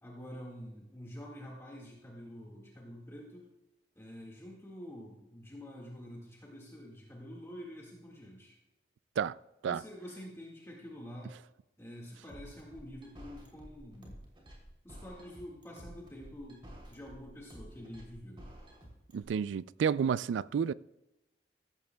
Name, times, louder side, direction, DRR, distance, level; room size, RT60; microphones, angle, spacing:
voice 1, 0.0-3.5 4.0-8.6 9.6-11.4 11.8-14.2 14.8-18.5, equal, 15° left, 1.8 m, -47 dB
sound 1, 12.3-19.2, equal, 30° right, 3.1 m, -51 dB
voice 2, 19.1-20.7, right 7 dB, 90° right, 0.3 m, -30 dB
15.5 x 13.5 x 2.3 m
head